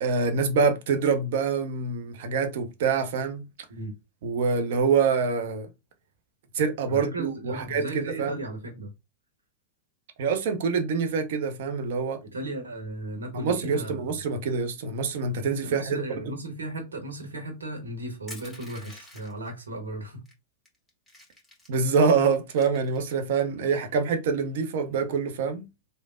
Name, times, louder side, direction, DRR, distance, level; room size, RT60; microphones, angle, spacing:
voice 1, 0.0-3.4 4.2-5.7 6.5-8.4 10.2-12.2 13.3-16.3 21.7-25.7, right 5 dB, 60° right, 0.7 m, -25 dB
voice 2, 6.9-8.9 12.2-14.0 15.6-20.2, right 1 dB, 85° right, 1.1 m, -36 dB
Crushing, 18.3-19.5 20.3-20.4 20.7-21.9 22.3-23.4, left 1 dB, 5° left, 1.7 m, -47 dB
3.2 x 2.1 x 2.5 m
hypercardioid pair, 100°, 0 cm